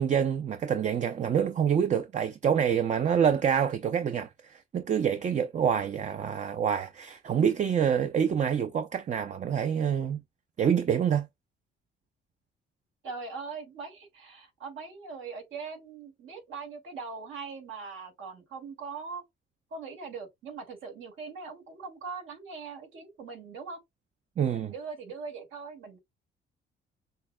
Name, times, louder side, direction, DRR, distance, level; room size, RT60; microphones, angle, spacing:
voice 1, 0.0-10.2 10.6-11.3 24.4-24.7, right 8 dB, 40° right, 0.4 m, -26 dB
voice 2, 13.0-19.2 19.7-23.8 24.5-26.0, right 5 dB, 75° right, 2.2 m, -41 dB
6.5 x 2.2 x 2.2 m
cardioid pair, 90°, 20 cm